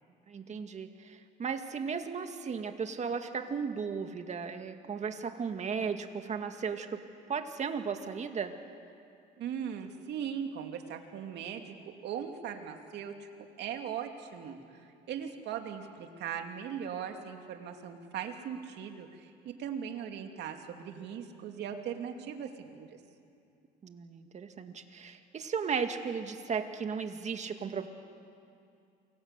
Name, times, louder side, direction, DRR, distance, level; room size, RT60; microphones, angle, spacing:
voice 1, 0.3-7.0 7.3-8.6 23.8-27.9, right 6 dB, 40° right, 6 dB, 2.1 m, -35 dB
voice 2, 9.4-13.3 13.6-14.6 15.1-22.9, right 8 dB, 70° right, 4 dB, 2.7 m, -39 dB
28.0 x 23.0 x 8.3 m, 2.5 s
cardioid pair, 100°, 18 cm